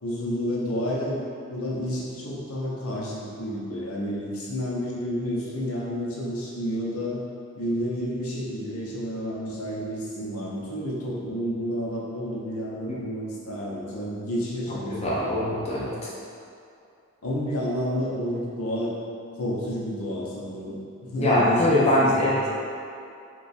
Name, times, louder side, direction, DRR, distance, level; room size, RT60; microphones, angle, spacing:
voice 1, 0.0-1.2 1.5-7.2 7.5-15.3 17.2-18.9 19.4-22.4, equal, 75° left, -4 dB, 0.7 m, -30 dB
voice 2, 14.7-16.1 21.2-22.5, left 1 dB, 30° left, -6 dB, 0.4 m, -23 dB
2.9 x 2.3 x 4.1 m, 2.5 s
head